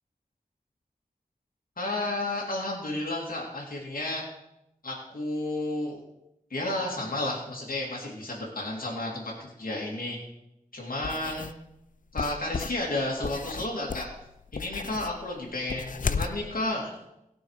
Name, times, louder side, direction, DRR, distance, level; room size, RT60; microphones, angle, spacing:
voice 1, 1.8-4.2 4.8-6.0 6.5-10.2 10.7-11.5 12.1-14.1 14.5-16.9, left 2 dB, 80° left, -3 dB, 2.7 m, -32 dB
sound 1, 11.0-11.6 12.2-16.4, left 5 dB, 65° left, 0.5 m, -34 dB
17.0 x 6.3 x 4.9 m, 0.85 s
cardioid pair, 45°, 14 cm